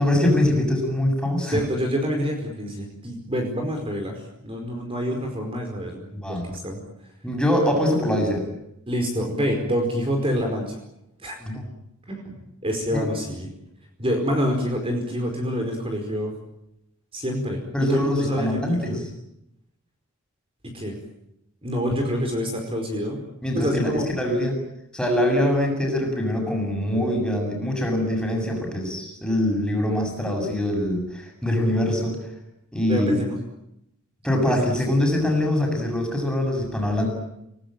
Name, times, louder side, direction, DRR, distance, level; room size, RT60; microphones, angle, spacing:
voice 1, 0.0-1.6 6.1-6.5 7.2-8.4 11.4-11.7 12.9-13.3 17.7-19.0 23.4-24.6 24.9-32.2 32.7-33.2 34.2-37.1, left 1 dB, 5° left, 1 dB, 7.3 m, -23 dB
voice 2, 1.4-6.8 8.9-10.8 11.2-11.4 12.1-13.5 14.0-16.3 17.1-17.6 17.9-19.0 20.7-21.0 21.6-23.2 23.5-24.1 32.9-33.4 34.5-34.7, equal, 25° right, 2 dB, 4.9 m, -27 dB
30.0 x 19.0 x 9.1 m, 0.83 s
head